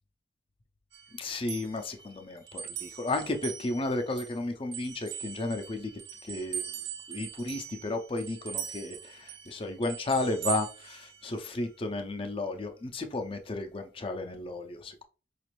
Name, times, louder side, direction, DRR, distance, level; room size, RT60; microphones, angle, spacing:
sound 1, 0.9-4.4 4.7-11.6, right 9 dB, 85° right, 1.0 m, -41 dB
voice 1, 1.2-5.9 6.3-6.6 7.1-15.0, left 2 dB, 30° left, 6 dB, 0.5 m, -33 dB
5.0 x 2.5 x 3.0 m, 0.36 s
head